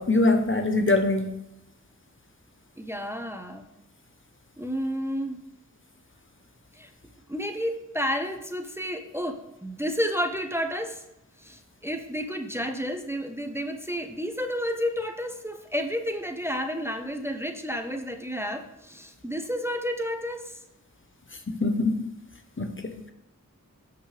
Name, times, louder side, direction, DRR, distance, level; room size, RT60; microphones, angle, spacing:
voice 1, 0.0-1.3 21.5-22.1 22.6-22.8, left 2 dB, 40° left, 6 dB, 1.0 m, -23 dB
voice 2, 2.8-3.6 4.6-5.4 6.7-6.9 7.3-11.0 11.4-20.6, equal, 10° right, 5 dB, 0.9 m, -31 dB
14.0 x 5.9 x 3.4 m, 0.87 s
cardioid pair, 45°, 32 cm